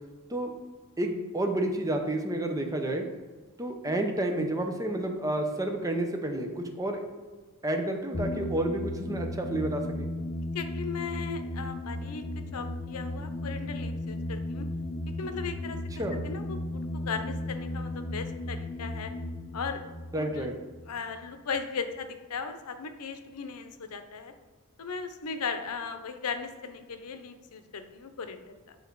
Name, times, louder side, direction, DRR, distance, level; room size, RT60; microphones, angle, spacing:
voice 1, 1.0-3.0 3.6-7.0 7.6-10.1 16.0-16.2 20.1-20.5, right 1 dB, 15° right, 4 dB, 0.6 m, -30 dB
sound 1, 8.1-21.4, left 1 dB, 40° left, 1.1 m, -35 dB
voice 2, 10.5-14.7 15.1-19.1 19.5-19.8 20.1-20.5 20.9-24.3 24.8-28.8, left 5 dB, 90° left, 8 dB, 0.6 m, -37 dB
7.1 x 4.0 x 4.6 m, 1.3 s
head